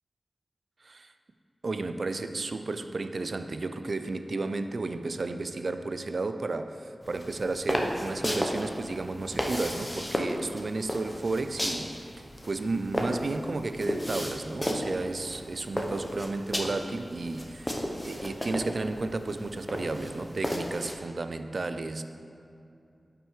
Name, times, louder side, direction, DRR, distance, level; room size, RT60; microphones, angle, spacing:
voice 1, 1.6-22.0, right 3 dB, 60° right, 9 dB, 0.4 m, -33 dB
sound 1, 7.0-21.0, equal, 15° left, 0.9 m, -34 dB
8.8 x 6.0 x 4.8 m, 2.6 s
wide cardioid pair, 75°, 0 cm